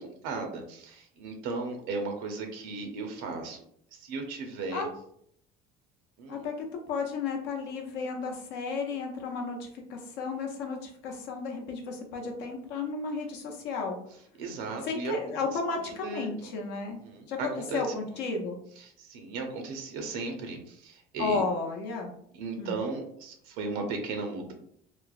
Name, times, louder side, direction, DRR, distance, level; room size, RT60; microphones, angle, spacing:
voice 1, 0.0-3.6 3.9-4.8 6.2-6.4 14.4-15.1 16.0-16.5 16.8-17.8 18.1-18.2 18.8-21.4 22.3-24.5, right 3 dB, 80° right, 3 dB, 0.6 m, -36 dB
voice 2, 6.3-14.0 14.8-17.0 17.3-18.6 21.2-22.1 22.6-22.7, left 4 dB, 70° left, 2 dB, 0.6 m, -33 dB
3.1 x 2.0 x 2.4 m, 0.67 s
cardioid pair, 130°, 19 cm